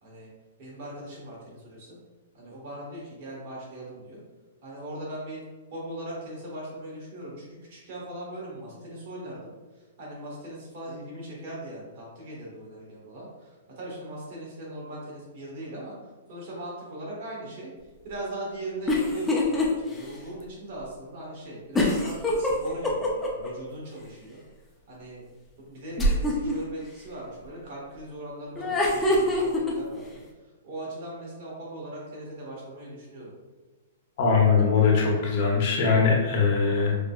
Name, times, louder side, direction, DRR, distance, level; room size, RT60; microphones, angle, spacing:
voice 1, 0.0-0.3 0.6-2.0 2.3-4.2 4.6-5.4 5.7-15.9 16.3-17.7 18.0-24.4 24.9-25.2 25.6-30.2 30.6-33.3, right 1 dB, 45° right, -5 dB, 1.3 m, -39 dB
sound 1, 18.9-19.7 20.1-20.2 21.7-23.5 26.0-26.5 28.5-29.7, left 1 dB, 10° left, 0.4 m, -24 dB
voice 2, 34.2-37.0, left 5 dB, 45° left, -2 dB, 0.9 m, -21 dB
5.0 x 2.1 x 2.3 m, 1.2 s
hypercardioid pair, 155°, 0 cm